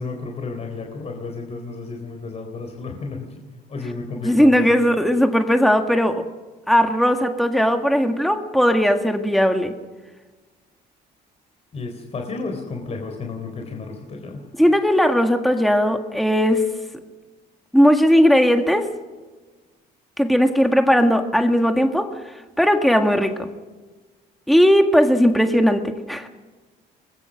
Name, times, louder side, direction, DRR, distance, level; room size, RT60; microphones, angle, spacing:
voice 1, 0.0-3.4 3.7-4.8 11.7-14.5, left 3 dB, 40° left, 3 dB, 3.8 m, -32 dB
voice 2, 4.2-6.2 6.7-9.7 14.6-16.6 17.7-18.9 20.2-22.2 22.6-23.5 24.5-26.3, equal, ahead, 5 dB, 1.8 m, -17 dB
23.5 x 20.5 x 6.4 m, 1.3 s
cardioid pair, 110°, 17 cm